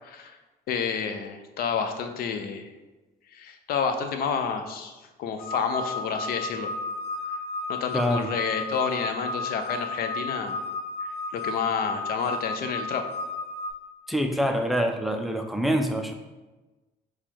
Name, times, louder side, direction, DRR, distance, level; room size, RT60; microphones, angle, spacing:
voice 1, 0.0-0.4 0.7-2.7 3.3-6.7 7.2-7.3 7.7-10.6 11.3-13.0, left 6 dB, 65° left, 7 dB, 0.5 m, -29 dB
sound 1, 5.4-13.7, left 2 dB, 90° left, 1.1 m, -33 dB
voice 2, 7.9-8.3 14.1-16.1, equal, ahead, 5 dB, 0.4 m, -25 dB
4.4 x 2.3 x 4.2 m, 1.2 s
cardioid pair, 110°, 17 cm